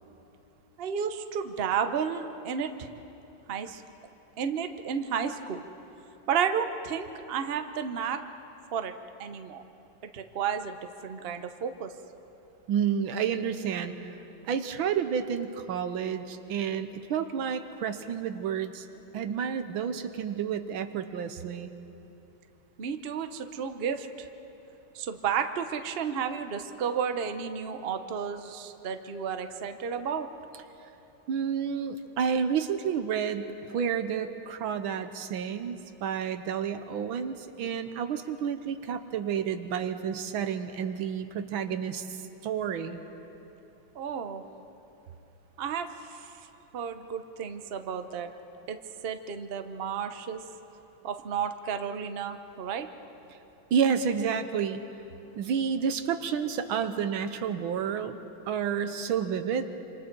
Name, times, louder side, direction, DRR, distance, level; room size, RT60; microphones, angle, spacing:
voice 1, 0.8-2.9 3.5-3.8 4.4-5.7 6.3-8.2 8.7-8.9 9.2-9.6 10.0-11.9 22.8-24.3 24.9-30.3 43.9-44.4 45.6-46.3 46.7-48.3 48.7-48.8 49.0-50.4 51.0-52.9, right 7 dB, 45° right, 8 dB, 0.7 m, -32 dB
voice 2, 12.7-14.2 14.5-18.9 19.1-21.7 31.3-43.0 53.7-54.9 55.4-58.2 58.5-59.8, right 7 dB, 90° right, 9 dB, 1.7 m, -30 dB
26.5 x 26.5 x 4.6 m, 2.9 s
omnidirectional pair, 2.2 m